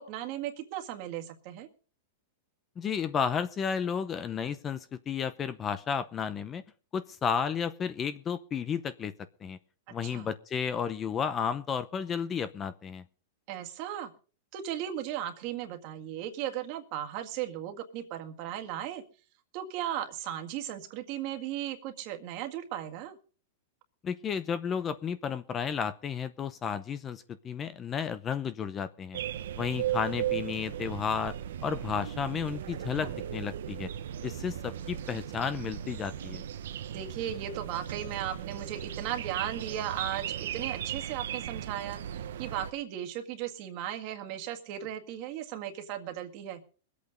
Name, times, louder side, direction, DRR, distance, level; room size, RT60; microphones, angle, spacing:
voice 1, 0.0-1.7 10.0-10.3 13.5-14.1 14.5-19.0 19.5-23.2 32.9-33.1 36.9-46.6, right 11 dB, 40° right, 5 dB, 1.9 m, -36 dB
voice 2, 2.8-6.6 6.9-9.1 9.4-9.6 9.9-13.0 24.0-29.2 29.6-31.3 31.6-33.9 34.2-36.4, left 7 dB, 20° left, 14 dB, 0.7 m, -32 dB
sound 1, 29.1-42.7, right 10 dB, 75° right, 0.9 m, -37 dB
21.5 x 8.4 x 5.2 m, 0.40 s
supercardioid pair, 155°, 0 cm